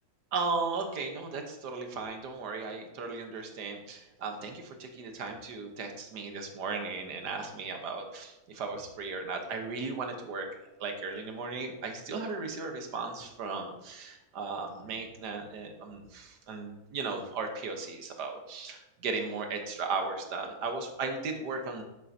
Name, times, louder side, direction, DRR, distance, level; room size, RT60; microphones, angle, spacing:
voice 1, 0.3-10.5 10.8-21.8, right 4 dB, 75° right, 4 dB, 1.6 m, -36 dB
10.0 x 7.3 x 2.7 m, 1.0 s
omnidirectional pair, 1.8 m